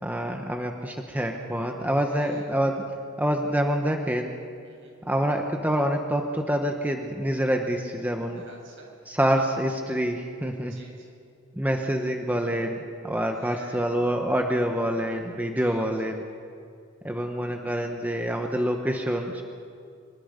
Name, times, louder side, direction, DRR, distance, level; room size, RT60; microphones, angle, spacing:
voice 1, 0.0-2.8 3.2-4.3 5.0-8.4 9.1-10.7 11.6-12.8 13.0-16.2 17.0-19.4, equal, 10° right, 3 dB, 1.1 m, -26 dB
voice 2, 2.0-2.5 4.6-4.9 8.3-8.9 10.7-11.2 13.3-13.9 15.4-16.1, right 2 dB, 65° right, -2 dB, 7.5 m, -49 dB
25.5 x 23.0 x 5.3 m, 2.3 s
head